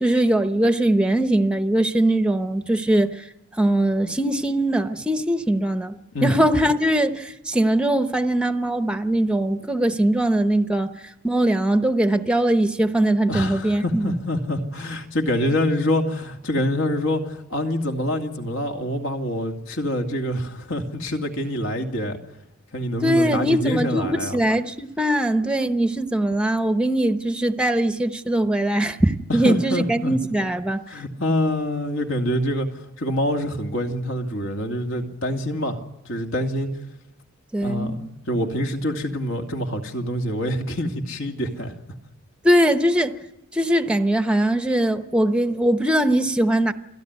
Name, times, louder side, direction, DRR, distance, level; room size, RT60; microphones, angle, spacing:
voice 1, 0.0-3.2 3.6-6.0 6.2-10.9 11.2-14.1 23.0-30.8 37.5-38.1 42.4-43.2 43.5-46.7, right 1 dB, 5° right, 0.9 m, -21 dB
voice 2, 13.3-22.2 22.7-24.4 29.4-30.1 30.9-35.8 36.0-36.7 37.6-41.7, left 1 dB, 60° left, 2.5 m, -26 dB
28.5 x 18.0 x 9.6 m
head